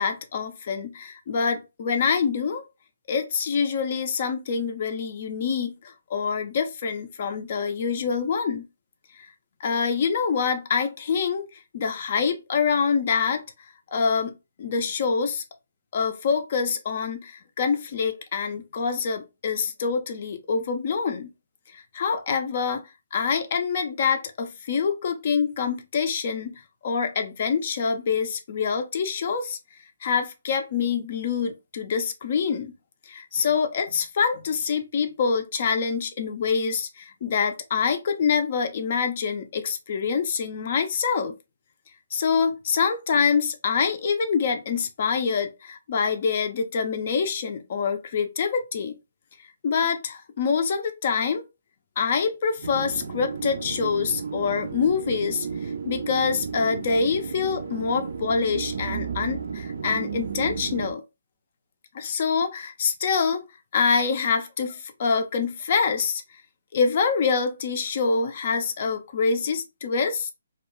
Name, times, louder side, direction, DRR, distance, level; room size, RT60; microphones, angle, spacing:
voice 1, 0.0-2.6 3.1-8.7 9.2-9.3 9.6-11.5 11.7-13.4 13.9-15.4 15.9-21.3 21.7-26.5 26.8-29.6 30.0-32.7 33.1-41.3 42.1-49.0 49.6-51.4 52.0-61.0 61.9-63.5 63.7-66.2 66.7-70.3, left 5 dB, 45° left, 0.4 m, -25 dB
sound 1, 52.6-60.9, right 6 dB, 65° right, 0.5 m, -33 dB
2.3 x 2.2 x 2.9 m
hypercardioid pair, 155°, 0 cm